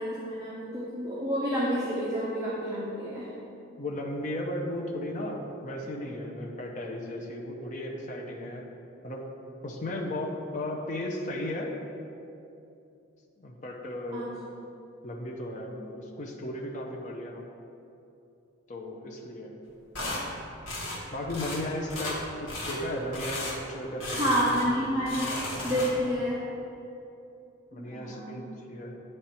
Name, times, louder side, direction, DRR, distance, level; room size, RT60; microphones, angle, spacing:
voice 1, 0.0-3.3 14.1-14.3 24.2-25.4 25.6-26.4 27.7-28.4, equal, 15° right, -7 dB, 0.7 m, -29 dB
voice 2, 3.8-8.7 9.0-9.3 9.6-11.8 13.4-14.3 15.0-17.4 18.7-19.5 21.1-24.6 27.7-28.9, left 1 dB, 35° left, 0 dB, 0.6 m, -35 dB
sound 1, 19.9-20.2 20.7-21.0 21.3-21.6 21.9-22.2 22.5-22.8 23.1-23.6 24.0-24.7 25.0-26.1, left 1 dB, 85° left, 1.3 m, -34 dB
9.2 x 3.3 x 4.3 m, 2.8 s
head